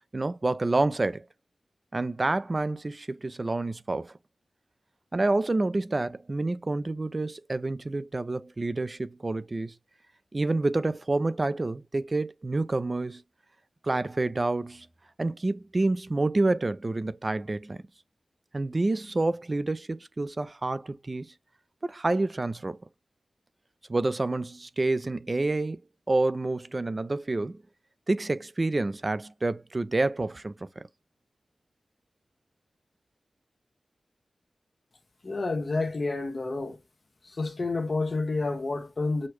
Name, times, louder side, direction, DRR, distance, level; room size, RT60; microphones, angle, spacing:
voice 1, 0.1-1.2 1.9-4.1 5.1-9.7 10.3-13.2 13.8-14.9 15.2-17.8 18.5-21.3 21.8-22.8 23.9-25.8 26.1-27.6 28.1-30.9, right 2 dB, 30° right, 0.3 m, -28 dB
voice 2, 35.2-36.8 37.2-39.3, left 3 dB, 45° left, 0.8 m, -29 dB
6.3 x 2.2 x 2.9 m
wide cardioid pair, 100°, 0 cm